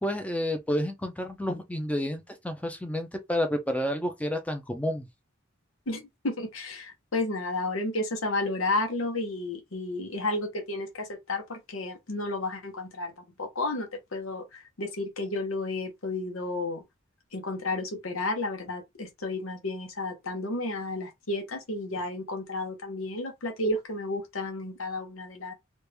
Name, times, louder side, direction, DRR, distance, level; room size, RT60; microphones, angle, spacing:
voice 1, 0.0-5.1, left 1 dB, 5° left, 0.6 m, -30 dB
voice 2, 5.9-13.1 13.4-16.8 17.3-25.5, left 2 dB, 85° left, 1.1 m, -32 dB
3.2 x 2.6 x 3.4 m
head